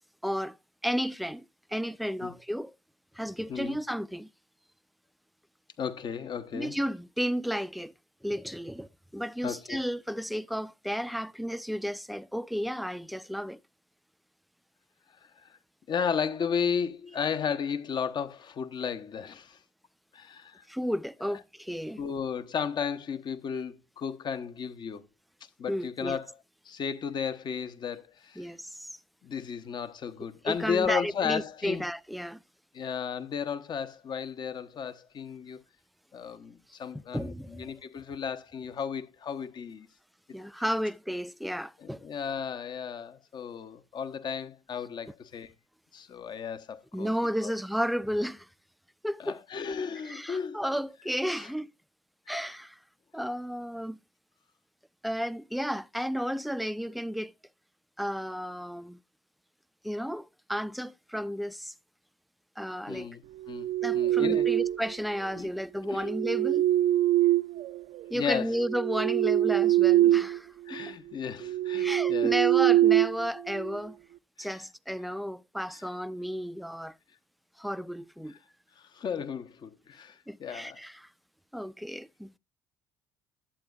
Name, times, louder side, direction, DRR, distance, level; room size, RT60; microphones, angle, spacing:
voice 1, 0.2-0.6 0.8-2.7 3.1-4.3 6.5-7.9 8.2-13.6 20.7-22.0 25.7-26.2 28.4-28.9 30.4-32.4 37.1-37.7 40.3-42.1 46.9-48.5 49.0-49.4 50.1-51.7 52.3-52.8 53.1-54.0 55.0-57.3 58.0-59.0 59.8-61.7 62.6-63.1 63.8-66.7 68.1-70.8 71.8-74.0 74.4-76.9 77.6-78.3 80.3-81.1 81.5-82.4, equal, ahead, 0.5 m, -33 dB
voice 2, 5.8-6.8 9.4-9.8 15.4-15.6 15.9-19.6 20.1-20.6 22.0-25.0 25.6-26.3 26.6-28.5 29.2-31.8 32.7-35.6 36.1-39.9 40.3-40.4 41.8-45.5 45.9-47.1 47.4-47.5 49.2-50.6 51.4-51.5 52.3-52.4 62.9-63.7 63.9-64.5 65.3-65.5 65.9-66.0 68.1-68.6 70.7-72.3 74.4-74.6 78.3-78.4 78.8-80.8, left 7 dB, 45° left, 1.0 m, -34 dB
sound 1, 63.4-64.9 65.9-68.0 68.5-70.4 70.7-70.9 71.4-73.8, right 13 dB, 60° right, 0.5 m, -24 dB
11.5 x 8.3 x 2.5 m
hypercardioid pair, 55°, 10 cm